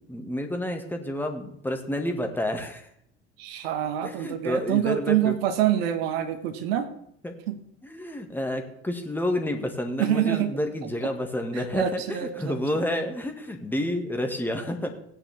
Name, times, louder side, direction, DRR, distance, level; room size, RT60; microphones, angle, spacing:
voice 1, 0.0-2.9 4.0-5.3 7.2-7.3 7.8-14.9, left 1 dB, 5° left, 4 dB, 1.8 m, -30 dB
voice 2, 3.4-6.9 7.5-7.6 10.0-10.6 11.0-11.1 11.5-12.6, right 11 dB, 60° right, 8 dB, 1.5 m, -26 dB
16.5 x 9.8 x 3.5 m, 0.72 s
figure-of-eight pair, 65°, 34 cm